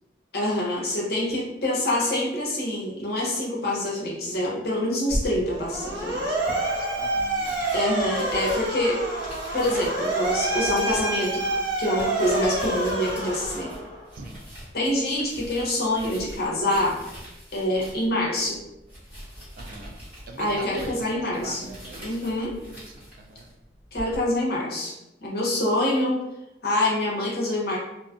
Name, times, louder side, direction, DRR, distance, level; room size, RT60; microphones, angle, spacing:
voice 1, 0.3-6.4 7.7-9.0 9.5-11.4 11.8-13.7 14.7-17.0 17.5-18.6 20.4-21.7 22.0-22.6 23.9-24.9 25.2-26.2 26.6-27.8, left 1 dB, 55° left, -3 dB, 0.8 m, -26 dB
sound 1, 5.1-24.2, equal, 10° right, 1.2 m, -41 dB
Motor vehicle (road) / Siren, 5.5-14.1, right 2 dB, 80° right, 0.9 m, -28 dB
voice 2, 6.4-7.6 14.1-14.4 19.6-20.0 20.3-23.5, right 2 dB, 50° right, 4 dB, 0.3 m, -42 dB
sound 2, 7.2-7.3 7.9-8.1 8.7-9.3 9.6-9.9 10.4-10.8 11.3-11.6 12.1-12.5 12.9-13.3, left 1 dB, 25° left, 0.8 m, -46 dB
2.5 x 2.3 x 2.4 m, 0.93 s
head